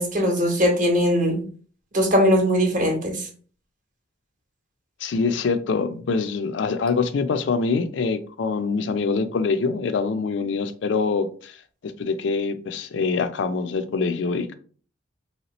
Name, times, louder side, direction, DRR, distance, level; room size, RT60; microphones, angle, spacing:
voice 1, 0.0-1.4 1.9-3.3, equal, 45° right, 0.9 m, -20 dB
voice 2, 5.0-11.6 11.8-14.5, left 4 dB, 65° left, 0.4 m, -24 dB
3.3 x 2.8 x 2.9 m
head